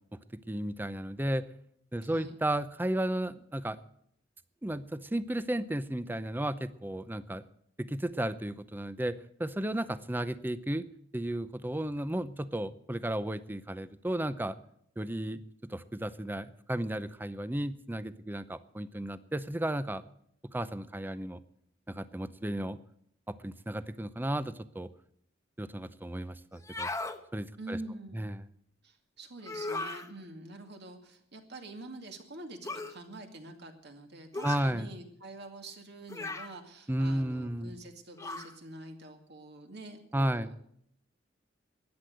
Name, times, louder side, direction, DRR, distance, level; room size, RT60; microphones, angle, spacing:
voice 1, 0.5-1.4 1.9-3.8 4.6-7.4 7.8-10.8 11.1-14.6 15.0-15.4 15.7-20.0 20.5-21.4 21.9-22.8 23.3-24.9 25.6-26.9 27.3-27.8 28.1-28.4 34.4-34.9 36.9-37.7 40.1-40.5, right 1 dB, 10° right, 14 dB, 0.6 m, -33 dB
voice 2, 2.0-2.4 27.6-28.2 28.8-40.6, right 2 dB, 60° right, 4 dB, 2.2 m, -46 dB
sound 1, 26.6-27.2 29.4-30.1 32.6-33.0 34.3-34.7 36.1-36.6 38.2-38.5, left 2 dB, 15° left, 1.0 m, -37 dB
14.0 x 10.0 x 7.9 m, 0.69 s
head